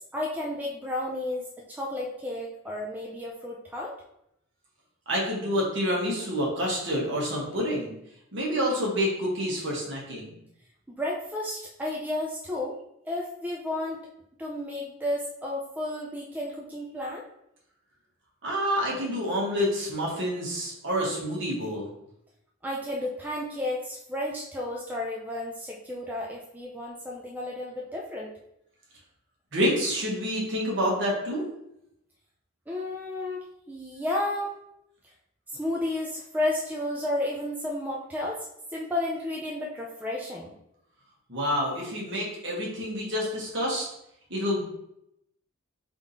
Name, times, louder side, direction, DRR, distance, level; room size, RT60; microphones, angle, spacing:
voice 1, 0.1-3.9 10.9-12.8 13.0-14.0 14.4-17.2 22.6-28.3 32.7-34.5 35.5-40.5, left 1 dB, 10° right, -3 dB, 0.4 m, -32 dB
voice 2, 5.1-7.9 8.3-10.4 18.4-21.9 29.5-31.4 41.3-43.9 44.3-44.6, equal, 55° right, -3 dB, 1.5 m, -28 dB
3.6 x 3.6 x 4.0 m, 0.79 s
head